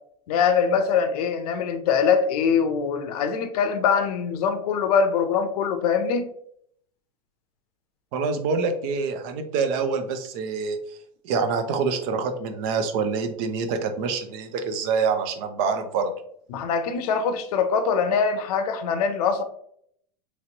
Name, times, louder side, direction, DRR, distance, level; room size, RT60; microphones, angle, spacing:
voice 1, 0.3-6.3 16.5-19.4, left 6 dB, 70° left, 8 dB, 0.5 m, -23 dB
voice 2, 8.1-10.8 11.2-16.1, right 5 dB, 55° right, 7 dB, 0.6 m, -26 dB
3.0 x 2.9 x 2.7 m, 0.68 s
hypercardioid pair, 110°, 20 cm